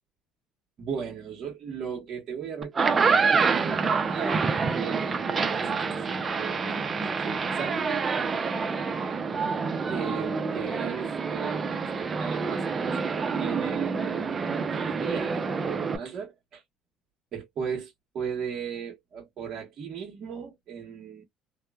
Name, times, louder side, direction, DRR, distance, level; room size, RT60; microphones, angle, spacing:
voice 1, 0.8-7.8 9.9-14.5 14.7-16.6 17.3-21.2, right 7 dB, 50° right, 1.0 m, -37 dB
sound 1, 2.6-16.0, right 5 dB, 30° right, 0.5 m, -27 dB
2.9 x 2.1 x 2.2 m
cardioid pair, 115°, 0 cm